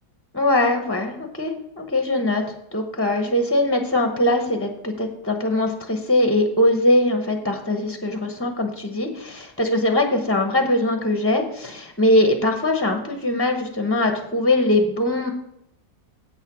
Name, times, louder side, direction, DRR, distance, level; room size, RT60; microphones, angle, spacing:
voice 1, 0.3-2.5 2.7-15.3, left 1 dB, 15° left, 5 dB, 0.4 m, -21 dB
8.2 x 6.5 x 6.0 m, 0.80 s
omnidirectional pair, 1.8 m